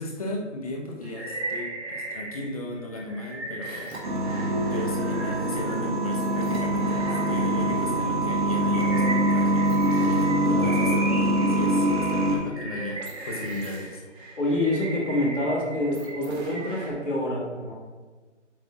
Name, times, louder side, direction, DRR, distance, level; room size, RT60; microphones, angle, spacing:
voice 1, 0.0-4.0 4.4-10.1 10.5-11.1 11.5-14.0 14.9-15.0, left 1 dB, 30° left, 0 dB, 0.9 m, -36 dB
sound 1, 1.0-2.6 2.9-8.0 8.5-16.9, right 2 dB, 60° right, 2.2 m, -37 dB
sound 2, 4.0-12.4, right 1 dB, 40° right, 1.5 m, -24 dB
sound 3, 4.5-6.2, left 1 dB, 50° left, 1.7 m, -37 dB
voice 2, 10.5-10.8 14.4-17.7, left 1 dB, 75° left, -3 dB, 2.4 m, -27 dB
9.0 x 7.8 x 2.4 m, 1.3 s
figure-of-eight pair, 160°, 37 cm